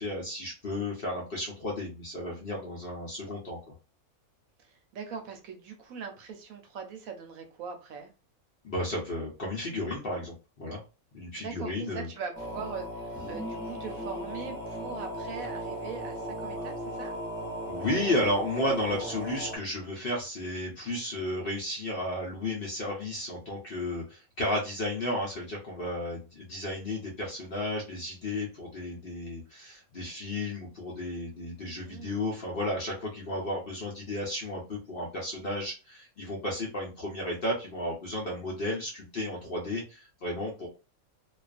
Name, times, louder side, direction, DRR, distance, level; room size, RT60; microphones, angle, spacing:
voice 1, 0.0-3.6 8.6-10.8 11.1-12.1 17.7-40.7, left 1 dB, 55° left, 0.7 m, -33 dB
voice 2, 4.6-8.1 11.4-17.2 31.8-32.4, right 5 dB, 75° right, 1.0 m, -41 dB
sound 1, 12.3-19.6, equal, 15° right, 0.6 m, -37 dB
2.4 x 2.4 x 2.4 m
omnidirectional pair, 1.6 m